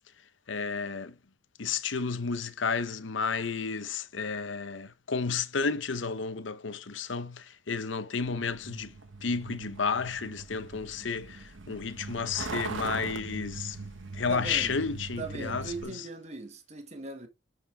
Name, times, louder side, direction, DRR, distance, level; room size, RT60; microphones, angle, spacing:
voice 1, 0.5-1.2 1.6-8.9 9.2-13.8 14.1-16.0, left 5 dB, 75° left, 0.8 m, -32 dB
Truck, 8.2-15.8, right 3 dB, 85° right, 1.4 m, -41 dB
voice 2, 14.3-14.8 15.2-17.3, right 3 dB, 35° right, 1.5 m, -39 dB
10.5 x 4.6 x 3.4 m
head